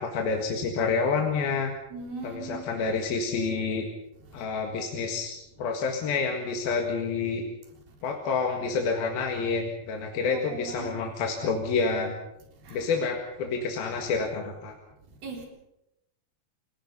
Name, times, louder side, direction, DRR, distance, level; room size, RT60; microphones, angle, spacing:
voice 1, 0.0-1.7 2.2-3.9 4.3-7.4 8.0-12.1 12.7-14.7, left 4 dB, 75° left, 2 dB, 3.7 m, -28 dB
voice 2, 1.9-2.6 10.2-11.0 12.7-12.8 15.2-15.5, right 4 dB, 70° right, 2 dB, 5.5 m, -39 dB
29.0 x 18.5 x 5.5 m, 0.86 s
omnidirectional pair, 4.4 m